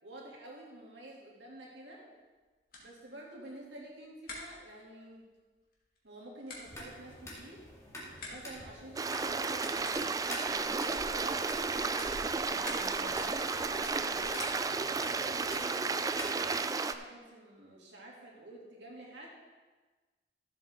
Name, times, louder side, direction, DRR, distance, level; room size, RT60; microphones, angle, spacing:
voice 1, 0.0-2.1 2.8-5.3 6.0-7.6 8.2-10.5 11.1-14.6 15.0-19.3, right 1 dB, 80° right, -2 dB, 2.6 m, -49 dB
sound 1, 2.1-15.0, left 2 dB, 50° left, 2.3 m, -52 dB
sound 2, 6.6-16.5, equal, 15° left, 2.0 m, -47 dB
Stream, 9.0-16.9, right 4 dB, 20° right, 0.3 m, -33 dB
voice 2, 12.2-13.1, right 3 dB, 45° right, 6 dB, 0.9 m, -51 dB
14.0 x 7.9 x 3.6 m, 1.3 s
head